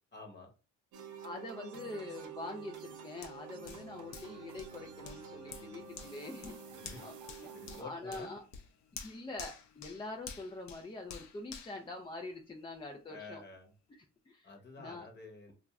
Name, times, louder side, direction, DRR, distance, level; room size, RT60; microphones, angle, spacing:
voice 1, 0.1-0.5 6.8-7.1 7.5-8.3 13.1-13.7 14.4-15.5, left 3 dB, 35° left, 2 dB, 1.0 m, -49 dB
sound 1, 0.9-7.8, right 6 dB, 80° right, 0.7 m, -49 dB
voice 2, 1.2-7.5 7.8-8.4 9.0-13.4 14.3-14.5 14.8-15.1, left 2 dB, 15° left, 2 dB, 0.4 m, -45 dB
Hands, 3.2-12.7 13.2-13.3, left 6 dB, 65° left, 0.6 m, -51 dB
2.4 x 2.3 x 3.1 m, 0.33 s
cardioid pair, 90°, 30 cm